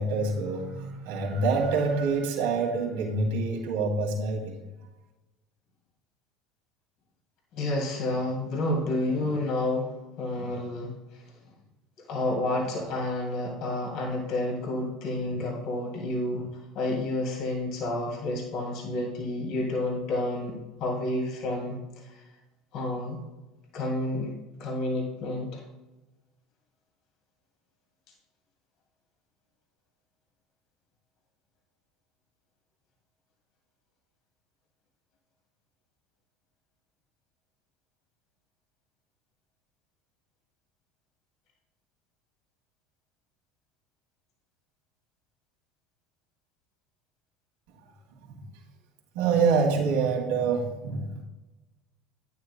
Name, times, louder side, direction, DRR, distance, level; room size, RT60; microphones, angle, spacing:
voice 1, 0.0-4.6 48.3-48.4 49.1-51.2, right 4 dB, 75° right, -2 dB, 2.4 m, -26 dB
voice 2, 7.5-11.2 12.0-22.2 22.7-23.2 23.7-24.3 24.6-25.6, left 1 dB, 60° left, -1 dB, 2.5 m, -30 dB
11.0 x 9.8 x 2.2 m, 1.0 s
hypercardioid pair, 80°, 0 cm